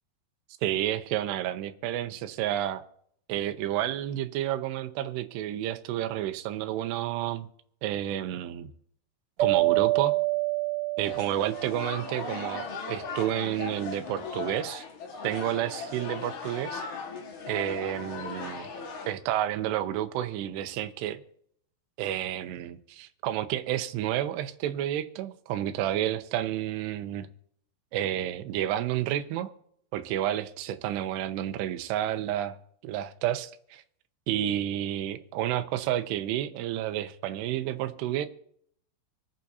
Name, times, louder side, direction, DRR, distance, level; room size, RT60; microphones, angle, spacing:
voice 1, 0.6-2.8 3.3-7.5 7.8-8.7 9.4-10.1 11.0-14.8 15.2-16.8 17.5-18.7 19.1-21.2 22.0-27.3 27.9-29.5 29.9-32.6 32.8-33.8 34.3-38.3, right 12 dB, 80° right, 8 dB, 2.9 m, -30 dB
sound 1, 9.4-12.4, right 19 dB, 50° right, 2.8 m, -27 dB
sound 2, 11.0-19.1, left 4 dB, 55° left, 2.6 m, -38 dB
26.5 x 9.0 x 2.8 m, 0.66 s
omnidirectional pair, 4.9 m